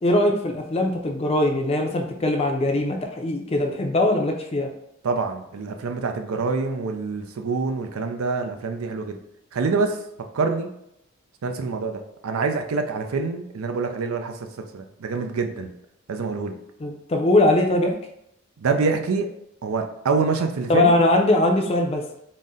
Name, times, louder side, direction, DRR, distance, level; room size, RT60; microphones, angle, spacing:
voice 1, 0.0-4.7 16.8-18.0 20.7-22.0, left 1 dB, 30° left, 3 dB, 0.4 m, -21 dB
voice 2, 5.0-9.2 9.5-10.0 10.3-10.7 11.4-14.3 14.7-15.7 16.1-16.5 18.6-19.3 19.6-20.9, right 4 dB, 85° right, 5 dB, 0.5 m, -25 dB
4.0 x 2.1 x 3.6 m, 0.79 s
head